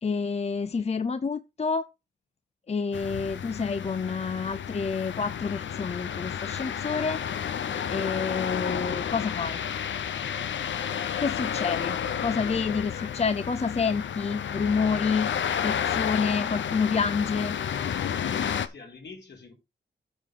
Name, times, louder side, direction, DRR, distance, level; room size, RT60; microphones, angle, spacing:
voice 1, 0.0-1.8 2.7-7.2 7.9-9.6 11.2-15.3 15.6-17.6, left 5 dB, 35° left, 0.6 m, -28 dB
sound 1, 2.9-18.7, left 8 dB, 85° left, 0.8 m, -31 dB
voice 2, 12.7-13.0 18.3-19.5, left 4 dB, 65° left, 4.4 m, -46 dB
8.9 x 5.1 x 5.8 m
cardioid pair, 85°, 19 cm